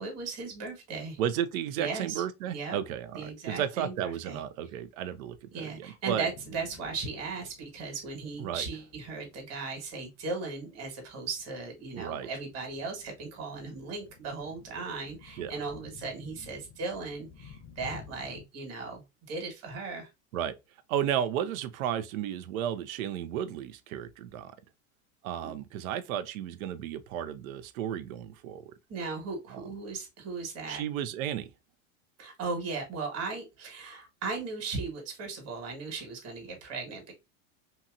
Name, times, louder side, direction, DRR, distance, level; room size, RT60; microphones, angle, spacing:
voice 1, 0.0-1.2 1.8-2.2 2.5-2.8 3.1-4.4 5.5-20.1 25.4-25.5 28.9-30.8 32.2-37.1, right 4 dB, 35° right, 1.3 m, -37 dB
voice 2, 1.2-6.3 8.4-8.7 11.9-12.3 15.4-15.5 20.3-20.5 20.9-24.6 25.2-28.7 29.5-29.6 30.7-31.5, right 10 dB, 70° right, 0.5 m, -33 dB
sound 1, 6.0-18.4, left 6 dB, 30° left, 0.7 m, -53 dB
2.8 x 2.8 x 2.4 m
hypercardioid pair, 95°, 43 cm